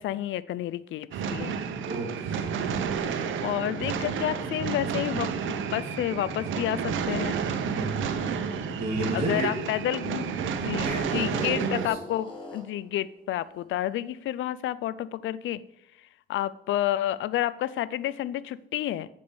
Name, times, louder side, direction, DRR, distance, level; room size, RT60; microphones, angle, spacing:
voice 1, 0.0-1.5 3.4-7.4 9.1-15.6 16.3-19.1, left 12 dB, 75° left, 17 dB, 0.5 m, -30 dB
sound 1, 1.1-11.9, right 6 dB, 75° right, 1.0 m, -31 dB
voice 2, 1.9-3.3 7.6-7.9 8.7-9.5 10.8-12.0, right 3 dB, 30° right, -3 dB, 2.2 m, -32 dB
sound 2, 5.2-10.1 10.7-12.9, left 2 dB, 25° left, 3.9 m, -44 dB
8.5 x 5.2 x 7.0 m, 0.79 s
cardioid pair, 90°, 20 cm